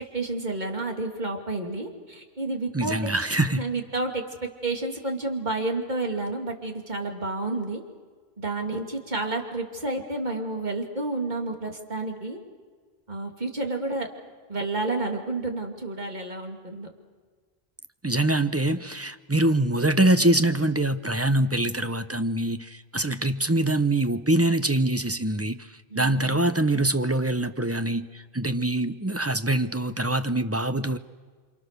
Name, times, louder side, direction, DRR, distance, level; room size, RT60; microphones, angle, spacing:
voice 1, 0.1-3.0 3.5-7.8 8.4-12.4 13.1-14.1 14.5-16.9 25.9-26.4, right 2 dB, 45° right, 2.8 m, -30 dB
voice 2, 2.7-3.7 18.0-25.7 25.9-31.0, right 1 dB, 15° right, 0.8 m, -24 dB
29.0 x 26.5 x 6.7 m
omnidirectional pair, 1.1 m